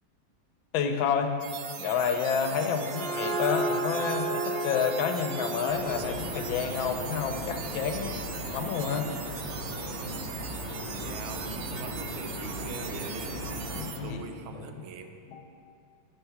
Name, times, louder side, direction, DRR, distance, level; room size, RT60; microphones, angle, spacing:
voice 1, 0.7-1.4 1.8-8.2 8.5-9.1 13.7-14.2 14.5-14.8 15.2-15.4, left 6 dB, 80° left, 6 dB, 1.4 m, -29 dB
sound 1, 1.4-14.0, right 7 dB, 70° right, 0.9 m, -40 dB
sound 2, 2.5-7.9, right 2 dB, 55° right, 1.7 m, -34 dB
sound 3, 5.7-13.9, left 1 dB, 35° left, 1.1 m, -38 dB
voice 2, 10.8-13.5 14.0-15.2, right 5 dB, 90° right, 7 dB, 1.4 m, -42 dB
6.6 x 6.1 x 5.7 m, 2.5 s
omnidirectional pair, 2.2 m